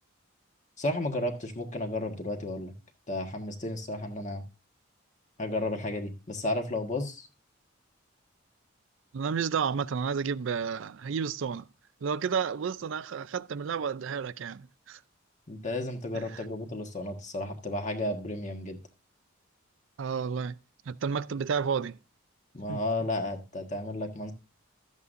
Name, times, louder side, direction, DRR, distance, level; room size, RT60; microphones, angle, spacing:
voice 1, 0.8-2.7 3.1-4.4 5.4-7.3 15.5-18.8 22.5-24.3, left 1 dB, 35° left, 1.5 m, -33 dB
voice 2, 9.1-11.7 12.0-15.0 16.3-16.4 20.0-20.5 20.9-22.0 22.7-22.8, right 6 dB, 65° right, 0.4 m, -31 dB
12.5 x 8.1 x 2.6 m
head